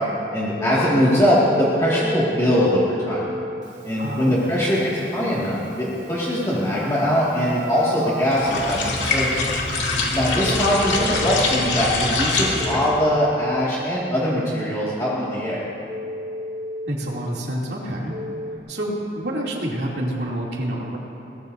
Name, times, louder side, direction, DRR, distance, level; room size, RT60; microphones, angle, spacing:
voice 1, 0.3-3.2 3.8-9.4 10.1-15.6, equal, 20° left, -8 dB, 2.1 m, -21 dB
Telephone, 0.6-11.4 12.6-13.6 15.9-16.9 18.1-18.6, left 1 dB, 40° right, 2.1 m, -34 dB
voice 2, 4.0-4.6 16.9-18.1 18.7-21.0, right 1 dB, 70° right, -4 dB, 2.8 m, -28 dB
sound 1, 8.3-12.9, left 3 dB, 85° left, 2.4 m, -24 dB
22.5 x 19.0 x 2.7 m, 2.8 s
head